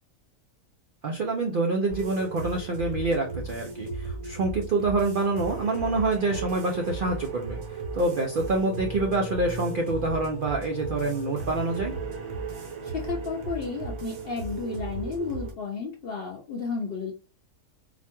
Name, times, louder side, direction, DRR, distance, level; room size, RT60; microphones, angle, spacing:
voice 1, 1.0-12.0, right 3 dB, 85° right, 1 dB, 0.4 m, -27 dB
sound 1, 1.9-15.5, right 3 dB, 70° right, 1.4 m, -35 dB
voice 2, 12.8-17.1, left 4 dB, 70° left, 1 dB, 0.5 m, -32 dB
4.2 x 2.2 x 2.9 m, 0.36 s
omnidirectional pair, 1.6 m